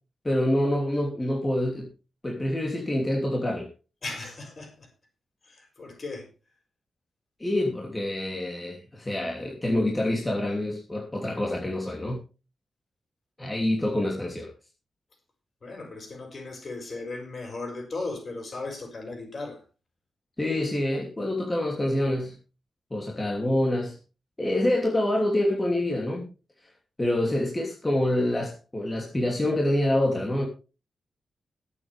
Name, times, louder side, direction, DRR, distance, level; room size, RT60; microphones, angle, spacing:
voice 1, 0.2-1.9 2.2-3.7 7.4-12.2 13.4-14.5 20.4-22.4 22.9-24.0 24.4-26.3 27.0-30.5, left 1 dB, 20° left, -1 dB, 2.9 m, -26 dB
voice 2, 4.0-4.9 5.5-6.3 15.6-19.6, left 3 dB, 45° left, 3 dB, 6.1 m, -37 dB
21.0 x 8.6 x 3.5 m, 0.33 s
wide cardioid pair, 105°, 0 cm